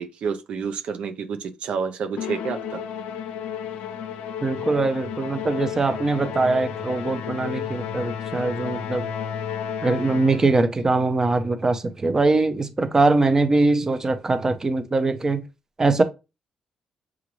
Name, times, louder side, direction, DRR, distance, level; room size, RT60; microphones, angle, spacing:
voice 1, 0.0-2.8, right 6 dB, 70° right, 0.5 m, -29 dB
Musical instrument, 2.2-10.7, left 8 dB, 90° left, 0.5 m, -32 dB
voice 2, 4.4-9.1 9.8-15.4 15.8-16.0, right 3 dB, 25° right, 0.6 m, -22 dB
5.9 x 2.5 x 3.1 m
cardioid pair, 85°, 2 cm